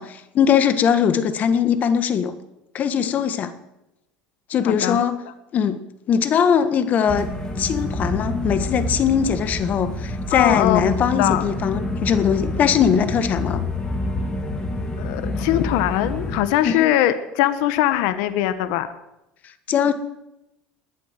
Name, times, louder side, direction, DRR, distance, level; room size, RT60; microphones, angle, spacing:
voice 1, 0.0-2.3 2.7-3.5 4.5-5.2 5.5-5.8 6.1-7.3 7.6-13.6 16.6-16.9 19.7-19.9, left 8 dB, 40° left, 11 dB, 1.6 m, -20 dB
voice 2, 4.6-5.0 10.3-11.4 15.0-18.9, left 13 dB, 75° left, 12 dB, 1.2 m, -21 dB
sound 1, 7.1-16.4, left 1 dB, 20° left, 3.5 m, -27 dB
21.0 x 8.4 x 7.6 m, 0.92 s
supercardioid pair, 110°, 4 cm